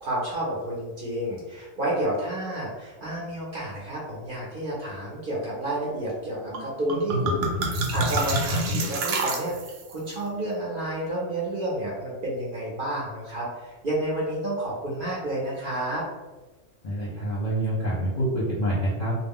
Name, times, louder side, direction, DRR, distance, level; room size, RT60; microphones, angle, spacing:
voice 1, 0.0-9.5 9.9-16.0, right 1 dB, 50° right, -6 dB, 0.7 m, -30 dB
sound 1, 6.5-6.6 6.9-9.9, right 2 dB, 75° right, 0.9 m, -27 dB
voice 2, 16.8-19.2, right 1 dB, 45° left, -9 dB, 0.7 m, -26 dB
2.4 x 2.1 x 3.5 m, 1.2 s
omnidirectional pair, 1.3 m